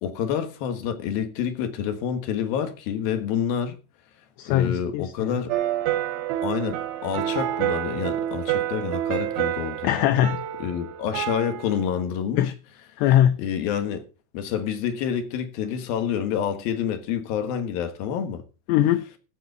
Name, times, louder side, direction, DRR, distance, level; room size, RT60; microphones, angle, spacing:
voice 1, 0.0-3.8 4.5-5.6 6.4-10.0 10.6-12.5 13.4-14.0 14.3-18.4, left 8 dB, 65° left, 2.9 m, -28 dB
voice 2, 4.4-5.4 9.8-10.4 12.4-12.5 13.0-13.4 18.7-19.0, left 12 dB, 80° left, 2.6 m, -21 dB
sound 1, 5.5-12.0, right 12 dB, 85° right, 3.5 m, -28 dB
14.5 x 4.9 x 8.0 m
omnidirectional pair, 5.5 m